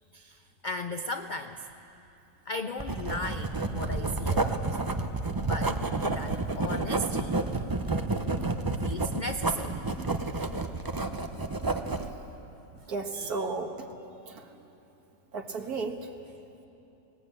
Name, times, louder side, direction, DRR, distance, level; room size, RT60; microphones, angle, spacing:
voice 1, 0.1-1.7 2.5-4.8 5.4-5.8 6.1-7.3 8.8-9.8 13.1-13.5, left 1 dB, 85° left, 7 dB, 0.4 m, -36 dB
Writing, 2.8-12.1, right 3 dB, 35° right, 0.3 m, -30 dB
voice 2, 12.9-13.7 14.3-14.4 15.3-16.1, right 3 dB, 65° right, 4 dB, 2.0 m, -33 dB
20.5 x 18.5 x 8.7 m, 2.9 s
omnidirectional pair, 1.7 m